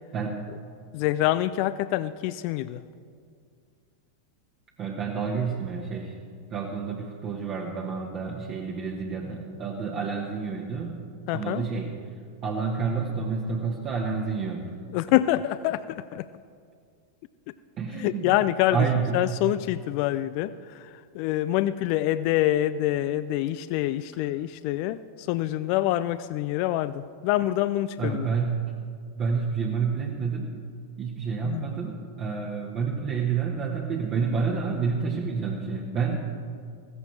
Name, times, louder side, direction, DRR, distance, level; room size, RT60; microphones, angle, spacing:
voice 1, 0.9-2.8 11.3-11.6 14.9-16.3 18.0-18.9 19.1-28.3 31.4-31.7, left 14 dB, 45° left, 15 dB, 0.4 m, -26 dB
voice 2, 4.8-6.2 6.5-11.0 11.3-11.9 12.4-14.7 17.8-18.3 18.7-19.2 28.0-28.7 29.2-30.6 31.0-36.2, right 5 dB, 35° right, -1 dB, 1.4 m, -29 dB
15.5 x 15.5 x 4.6 m, 2.2 s
figure-of-eight pair, 90°, 0 cm